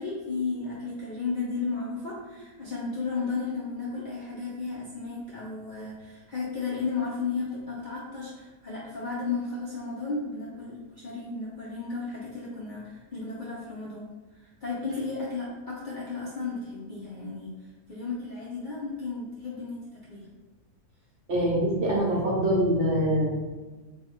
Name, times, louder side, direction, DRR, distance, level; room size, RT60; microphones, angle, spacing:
voice 1, 0.0-14.1 14.4-17.5 17.9-20.3, left 4 dB, 50° left, -7 dB, 0.6 m, -34 dB
voice 2, 21.3-23.3, right 1 dB, 55° right, -4 dB, 1.2 m, -24 dB
3.4 x 2.3 x 4.3 m, 1.2 s
omnidirectional pair, 1.6 m